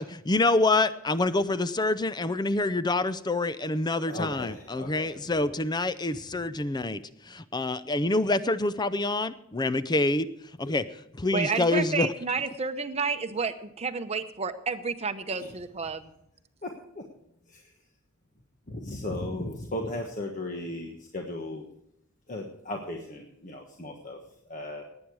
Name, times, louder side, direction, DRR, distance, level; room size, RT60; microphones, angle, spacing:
voice 1, 0.3-7.0 7.3-10.3 10.7-10.8 11.2-12.1, left 2 dB, 20° left, 13 dB, 0.5 m, -26 dB
voice 2, 4.1-5.7 6.1-6.2 6.5-6.6 15.3-15.5 16.6-17.0 17.4-17.8 18.7-21.7 22.3-24.8, left 1 dB, 40° left, 1 dB, 1.4 m, -37 dB
voice 3, 11.3-16.1, right 5 dB, 30° right, 9 dB, 0.8 m, -30 dB
18.5 x 9.0 x 4.8 m, 0.77 s
head